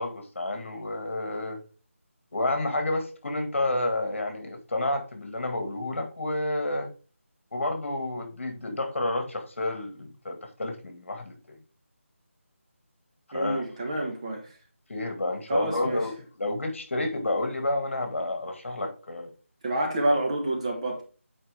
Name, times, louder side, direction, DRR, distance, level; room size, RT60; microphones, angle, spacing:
voice 1, 0.0-1.6 2.3-6.9 7.5-11.6 13.3-13.7 14.9-19.3, left 2 dB, 60° left, 1.9 m, -30 dB
voice 2, 13.3-14.5 15.5-16.0 19.6-21.0, right 1 dB, 25° right, 1.3 m, -28 dB
8.6 x 4.8 x 3.4 m
figure-of-eight pair, 170°, 7 cm